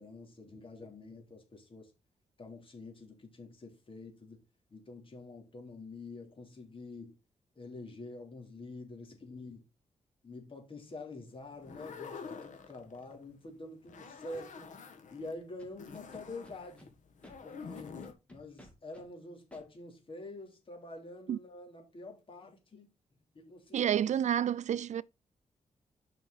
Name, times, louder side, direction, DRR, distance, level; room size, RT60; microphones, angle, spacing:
voice 1, 0.0-1.9 2.4-4.4 4.7-7.2 7.5-9.6 10.2-14.8 15.1-16.9 17.4-18.0 18.3-22.9 23.3-23.9, left 2 dB, 45° left, 3.4 m, -47 dB
sound 1, 11.5-13.2 13.8-15.3 15.8-18.1, left 5 dB, 75° left, 1.8 m, -47 dB
Scratching (performance technique), 15.6-16.9 17.2-17.3 17.7-19.0 19.5-19.6, equal, 10° left, 3.3 m, -55 dB
voice 2, 23.7-25.0, right 10 dB, 65° right, 0.4 m, -29 dB
9.8 x 5.8 x 4.1 m
cardioid pair, 95°, 13 cm